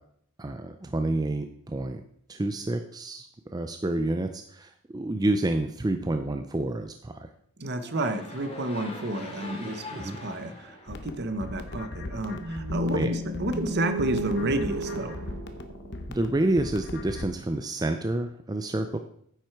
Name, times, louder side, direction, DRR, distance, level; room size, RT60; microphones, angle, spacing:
voice 1, 0.4-2.0 2.3-3.3 3.5-7.3 10.0-10.2 12.9-13.1 16.1-19.0, right 2 dB, 20° right, 7 dB, 0.4 m, -28 dB
voice 2, 7.6-15.1, right 1 dB, 50° right, 9 dB, 0.9 m, -31 dB
sound 1, 7.7-11.9, left 2 dB, 25° left, 1.6 m, -43 dB
sound 2, 10.9-17.3, left 2 dB, 50° left, 0.9 m, -39 dB
sound 3, 12.4-16.5, right 1 dB, 80° right, 1.1 m, -33 dB
9.5 x 7.6 x 4.7 m, 0.66 s
head